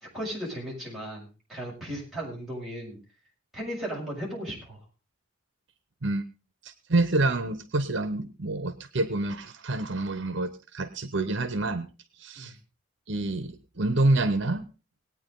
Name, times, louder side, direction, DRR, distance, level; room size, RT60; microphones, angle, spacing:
voice 1, 0.1-3.0 3.5-4.8 12.3-12.5, equal, ahead, -5 dB, 6.9 m, -36 dB
voice 2, 6.6-11.9 12.2-12.6 13.1-14.7, right 2 dB, 60° right, 11 dB, 1.0 m, -27 dB
20.5 x 9.1 x 3.9 m, 0.32 s
head